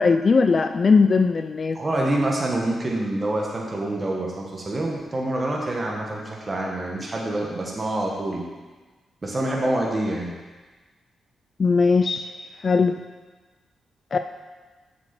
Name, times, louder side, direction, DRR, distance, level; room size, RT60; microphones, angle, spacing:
voice 1, 0.0-1.8 11.6-12.3 12.6-12.9 14.1-14.2, left 4 dB, 45° left, 8 dB, 0.3 m, -19 dB
voice 2, 1.7-8.4 9.2-10.3, right 1 dB, 35° right, -2 dB, 1.5 m, -26 dB
7.5 x 6.0 x 4.5 m, 1.3 s
cardioid pair, 60°, 0 cm